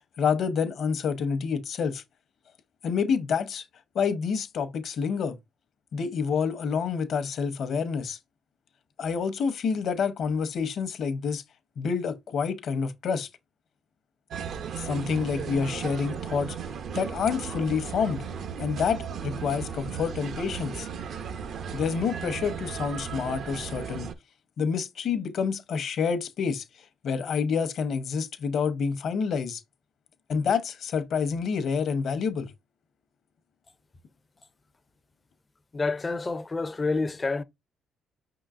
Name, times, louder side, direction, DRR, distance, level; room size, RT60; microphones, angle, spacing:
voice 1, 0.2-2.0 2.8-3.6 3.9-5.4 5.9-8.2 9.0-11.4 11.8-13.3 14.8-16.6 16.9-18.2 18.6-20.9 21.7-24.1 24.6-26.6 27.0-29.6 30.3-32.5, left 6 dB, 60° left, 0.8 m, -28 dB
sound 1, 14.3-24.1, right 7 dB, 60° right, 0.6 m, -36 dB
voice 2, 35.7-37.4, left 3 dB, 25° left, 0.5 m, -28 dB
5.3 x 3.8 x 2.5 m
cardioid pair, 95°, 0 cm